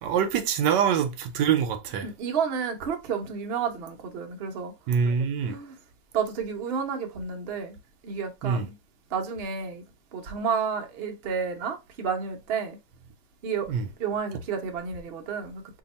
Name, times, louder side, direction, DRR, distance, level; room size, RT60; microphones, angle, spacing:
voice 1, 0.0-2.1 4.9-5.6 8.4-8.7 13.7-13.8, right 7 dB, 75° right, 1.1 m, -25 dB
voice 2, 2.0-4.7 5.5-5.7 6.1-7.8 8.0-8.7 9.1-9.8 10.1-12.8 13.4-13.7 14.0-15.8, right 6 dB, 90° right, 0.5 m, -31 dB
2.8 x 2.8 x 4.0 m
omnidirectional pair, 2.1 m